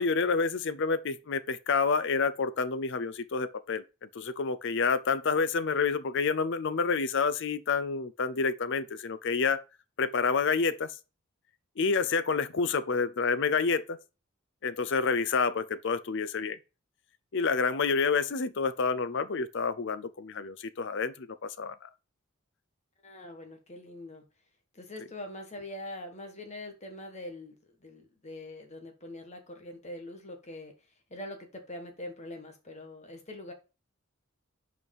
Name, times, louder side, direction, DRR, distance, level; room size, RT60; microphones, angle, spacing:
voice 1, 0.0-3.8 4.1-9.6 10.0-10.9 11.8-14.0 14.6-16.6 17.3-21.9, left 5 dB, 55° left, 0.6 m, -28 dB
voice 2, 23.0-24.2 24.7-30.7 31.1-33.5, left 1 dB, 30° left, 1.5 m, -43 dB
5.5 x 4.7 x 5.4 m
head